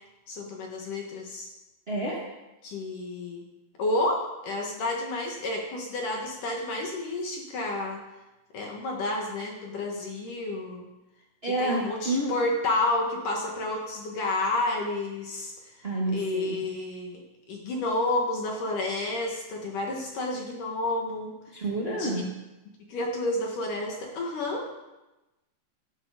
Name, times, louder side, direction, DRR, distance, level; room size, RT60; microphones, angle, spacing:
voice 1, 0.3-1.5 2.6-3.4 3.8-8.0 8.5-10.9 11.4-17.2 17.5-21.6 22.0-22.3 22.9-24.7, left 2 dB, 55° left, 0 dB, 2.7 m, -30 dB
voice 2, 1.9-2.2 11.4-12.3 15.8-16.6 21.5-22.2, right 1 dB, 85° right, -3 dB, 0.5 m, -29 dB
18.0 x 11.5 x 5.2 m, 1.0 s
omnidirectional pair, 5.3 m